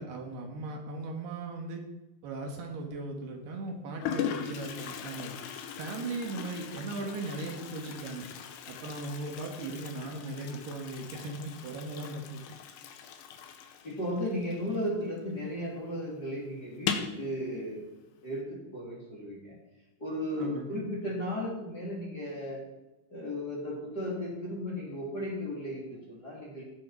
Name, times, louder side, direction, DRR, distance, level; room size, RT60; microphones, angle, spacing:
voice 1, 0.0-1.8 2.2-5.3 5.8-8.3 8.7-12.4 20.4-20.8, right 2 dB, 70° right, 2 dB, 3.4 m, -38 dB
Toilet flush, 2.5-3.0 3.7-3.8 4.0-15.3 15.6-15.7 16.0-16.1 16.7-17.2, left 8 dB, 75° left, 3.0 m, -39 dB
voice 2, 13.8-17.8 18.2-19.5 20.0-22.6 23.1-26.6, left 1 dB, 25° left, -5 dB, 3.1 m, -35 dB
17.5 x 9.3 x 4.5 m, 1.0 s
omnidirectional pair, 5.1 m